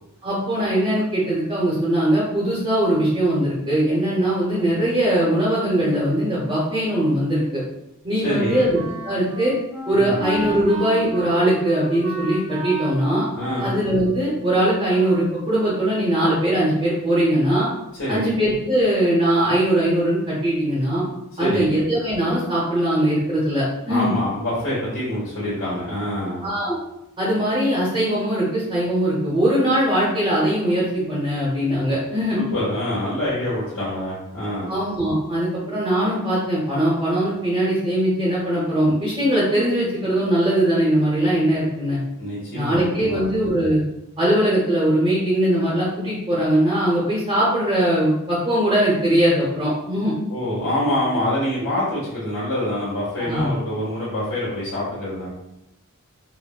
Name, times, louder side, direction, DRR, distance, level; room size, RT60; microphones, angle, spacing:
voice 1, 0.2-7.6 8.0-8.8 9.0-9.5 9.9-13.2 13.6-17.7 18.1-21.0 21.4-24.1 26.4-26.8 27.2-32.4 34.7-42.0 42.5-43.8 44.2-50.1 53.2-53.5, right 1 dB, 25° right, -8 dB, 0.8 m, -21 dB
voice 2, 8.2-8.6 9.9-10.1 13.3-13.7 18.0-18.3 21.3-21.7 23.9-26.4 32.3-34.7 42.2-43.3 50.3-55.3, left 1 dB, 80° left, -10 dB, 1.2 m, -25 dB
Wind instrument woodwind instrument, 8.3-15.4, right 1 dB, 60° right, 1.0 m, -33 dB
4.2 x 2.1 x 2.2 m, 0.86 s
head